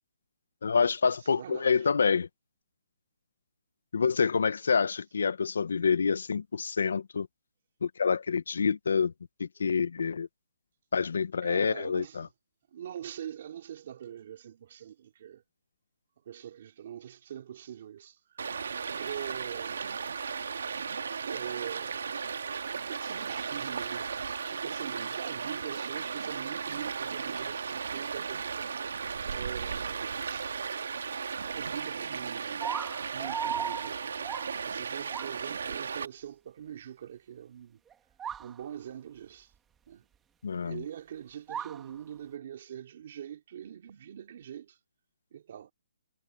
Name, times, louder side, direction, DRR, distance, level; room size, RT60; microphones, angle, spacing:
voice 1, 0.6-2.3 3.9-7.3 7.8-9.1 9.4-10.3 10.9-12.3 40.4-40.8, left 5 dB, 65° left, 0.8 m, -27 dB
voice 2, 1.2-1.9 11.4-12.3 12.7-15.4 16.3-18.2 18.6-19.9 21.2-22.1 22.6-24.1 24.4-28.9 29.3-30.5 31.4-32.7 33.1-34.3 34.6-37.8 38.4-39.5 39.9-40.1 40.6-44.8 45.3-45.7, right 10 dB, 35° right, 3.0 m, -43 dB
Stream, 18.4-36.1, right 6 dB, 60° right, 1.7 m, -35 dB
sound 1, 32.6-34.6 35.1-35.4 37.9-38.0 38.2-38.6 41.5-41.9, right 8 dB, 5° right, 1.2 m, -36 dB
hypercardioid pair, 175°, 0 cm